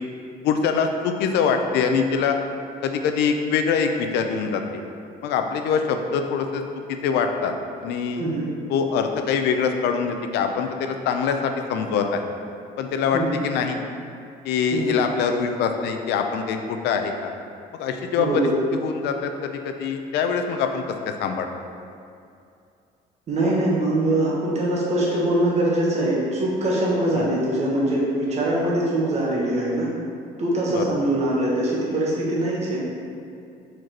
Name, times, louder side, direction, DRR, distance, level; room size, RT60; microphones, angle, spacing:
voice 1, 0.4-2.4 2.8-4.8 5.2-6.6 6.9-7.5 7.8-8.3 8.7-12.2 12.8-13.8 14.4-17.3 17.7-18.4 18.8-20.8 21.2-21.5 27.1-27.3 30.7-30.8, left 6 dB, 80° left, 5 dB, 0.6 m, -24 dB
voice 2, 8.1-8.5 13.1-13.4 14.7-15.0 18.2-18.5 23.3-29.9 30.4-32.8, right 1 dB, 40° right, -5 dB, 1.4 m, -23 dB
4.8 x 4.5 x 4.5 m, 2.5 s
cardioid pair, 110°, 17 cm